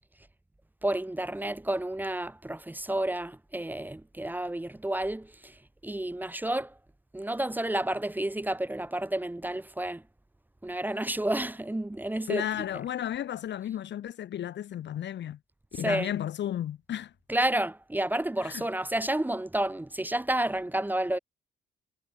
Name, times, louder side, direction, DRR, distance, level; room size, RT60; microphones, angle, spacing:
voice 1, 0.8-6.7 7.1-10.0 10.6-12.8 15.7-16.1 17.3-21.2, right 1 dB, 10° right, 1.7 m, -30 dB
voice 2, 12.3-15.4 15.7-17.1 18.4-18.6, left 11 dB, 65° left, 2.6 m, -33 dB
cardioid pair, 90°, 19 cm